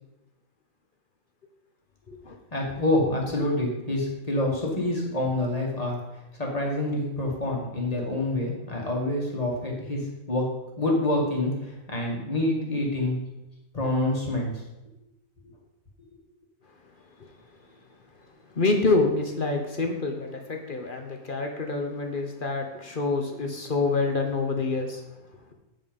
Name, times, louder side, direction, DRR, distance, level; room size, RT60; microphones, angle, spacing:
voice 1, 2.5-6.0 6.4-10.0 10.3-10.4 10.8-13.2 13.7-14.5, left 1 dB, 30° left, -2 dB, 2.0 m, -27 dB
voice 2, 18.5-25.0, left 3 dB, 45° left, 3 dB, 1.0 m, -27 dB
9.0 x 5.4 x 5.3 m, 0.95 s
omnidirectional pair, 1.4 m